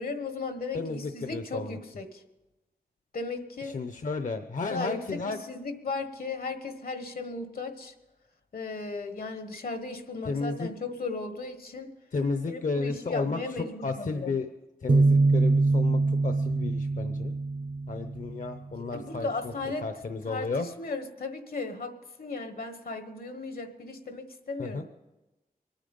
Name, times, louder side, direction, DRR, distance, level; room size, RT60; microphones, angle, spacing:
voice 1, 0.0-2.2 3.1-3.8 4.7-7.9 8.5-11.9 12.4-14.3 18.8-19.9 20.3-21.9 22.2-24.8, left 3 dB, 75° left, 8 dB, 1.4 m, -36 dB
voice 2, 0.7-1.8 3.6-5.4 10.2-10.7 12.1-13.4 13.8-14.5 14.8-17.3 17.9-19.5 19.8-20.7 24.6-24.8, left 4 dB, 60° left, 8 dB, 0.7 m, -32 dB
sound 1, 14.9-18.6, right 3 dB, 35° right, 0.4 m, -24 dB
24.0 x 9.0 x 5.3 m, 1.0 s
wide cardioid pair, 105°, 15 cm